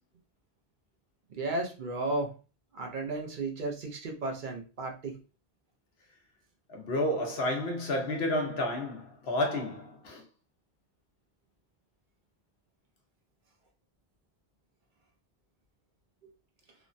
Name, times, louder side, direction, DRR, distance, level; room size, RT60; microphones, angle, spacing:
voice 1, 1.4-2.3 2.7-5.2, right 2 dB, 55° right, 0.7 m, -34 dB
voice 2, 6.7-10.2, left 1 dB, 85° left, 1.0 m, -31 dB
3.1 x 2.1 x 2.5 m
omnidirectional pair, 1.0 m